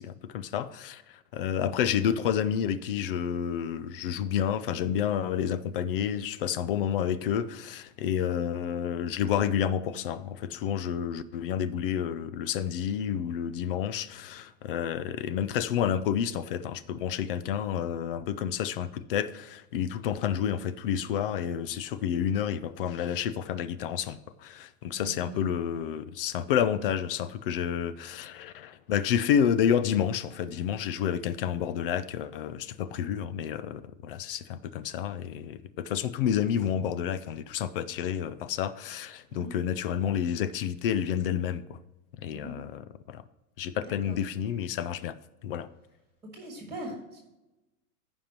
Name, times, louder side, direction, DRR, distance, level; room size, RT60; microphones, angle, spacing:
voice 1, 0.0-41.8 42.2-42.8 43.1-43.2 43.6-45.1 45.4-45.7, left 9 dB, 40° left, 0.4 m, -30 dB
voice 2, 25.0-25.4 39.3-39.5 42.3-42.6 43.8-44.2 46.3-47.2, right 1 dB, 5° right, 1.7 m, -41 dB
14.5 x 5.2 x 2.9 m
supercardioid pair, 150°, 44 cm